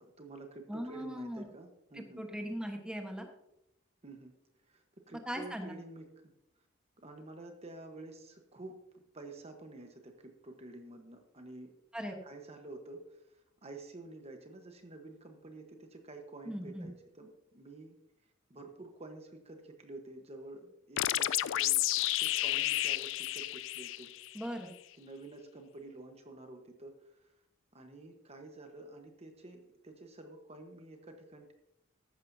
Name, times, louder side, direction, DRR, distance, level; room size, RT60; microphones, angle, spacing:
voice 1, 0.0-2.3 4.0-4.3 4.7-6.1 7.0-11.7 12.2-18.0 18.5-21.8 22.1-24.1 25.0-27.3 27.7-31.5, right 2 dB, 30° right, 5 dB, 1.2 m, -49 dB
voice 2, 0.7-1.5 1.9-3.3 5.3-5.7 11.9-12.2 16.4-16.9 24.3-24.7, equal, 5° right, 3 dB, 1.2 m, -39 dB
sound 1, 21.0-24.5, left 15 dB, 65° left, 0.3 m, -31 dB
14.5 x 11.0 x 2.7 m, 0.83 s
head